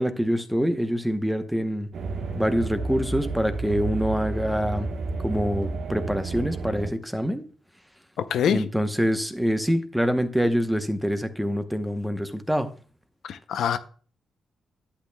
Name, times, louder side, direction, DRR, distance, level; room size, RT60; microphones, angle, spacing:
voice 1, 0.0-1.9 2.3-4.9 5.2-7.4 8.5-12.7, equal, ahead, 0.8 m, -25 dB
sound 1, 1.9-6.9, right 3 dB, 70° right, 1.1 m, -31 dB
voice 2, 8.2-8.6 13.3-13.8, left 8 dB, 80° left, 0.5 m, -24 dB
11.0 x 8.5 x 2.2 m
cardioid pair, 110°, 0 cm